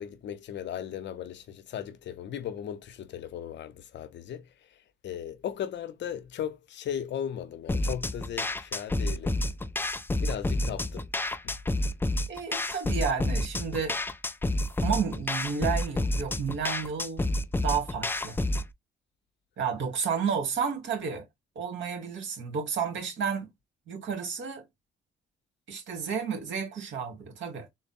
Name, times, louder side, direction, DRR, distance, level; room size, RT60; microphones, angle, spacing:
voice 1, 0.0-9.4 10.2-11.1 11.4-11.6, left 9 dB, 65° left, 0.7 m, -37 dB
sound 1, 7.7-18.7, left 1 dB, 10° left, 0.4 m, -29 dB
voice 2, 12.3-14.0 14.8-17.3 17.6-18.4 19.6-21.2 21.6-23.5 23.9-24.6 25.7-27.7, right 6 dB, 65° right, 2.0 m, -31 dB
3.9 x 2.1 x 4.1 m
cardioid pair, 90°, 20 cm